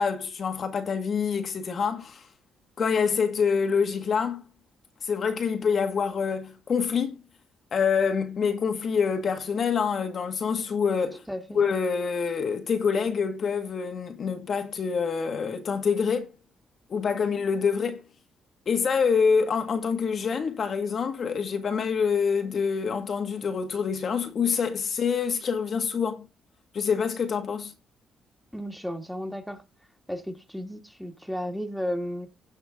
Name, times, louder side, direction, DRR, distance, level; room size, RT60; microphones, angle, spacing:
voice 1, 0.0-2.3 2.8-4.5 5.0-7.2 7.7-11.2 11.5-16.3 16.9-18.0 18.7-26.3 26.7-27.7, left 6 dB, 50° left, 1.6 m, -26 dB
voice 2, 11.3-11.6 28.5-29.6 30.1-32.3, equal, ahead, 2.1 m, -33 dB
16.5 x 5.6 x 3.6 m
cardioid pair, 90°, 0 cm